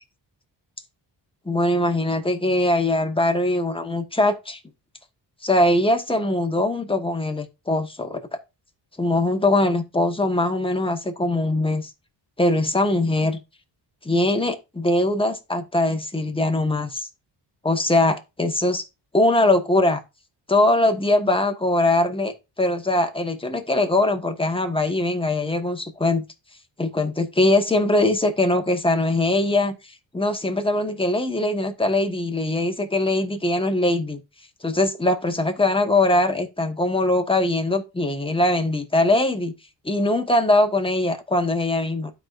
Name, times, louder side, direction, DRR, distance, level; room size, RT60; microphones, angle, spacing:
voice 1, 1.4-4.6 5.4-8.2 9.0-11.9 12.4-13.4 14.0-17.1 17.6-18.8 19.1-20.0 20.5-26.2 26.8-29.8 30.1-34.2 34.6-39.5 39.8-42.1, left 2 dB, 10° left, 1.3 m, -21 dB
12.5 x 4.6 x 2.5 m
cardioid pair, 80°, 46 cm